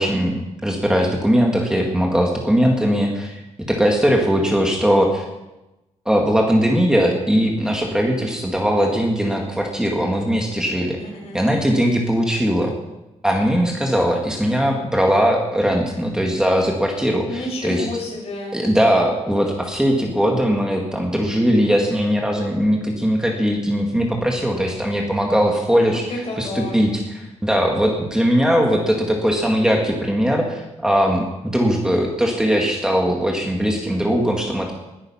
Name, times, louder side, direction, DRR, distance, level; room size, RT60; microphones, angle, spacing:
voice 1, 0.0-3.4 3.7-5.2 6.1-11.0 11.3-12.7 13.2-17.9 18.5-26.1 26.4-34.7, equal, 5° right, 0 dB, 1.9 m, -20 dB
voice 2, 11.0-11.4 17.3-18.5 25.9-26.8, left 2 dB, 55° left, -1 dB, 6.0 m, -30 dB
20.5 x 9.5 x 5.7 m, 1.0 s
wide cardioid pair, 160°, 12 cm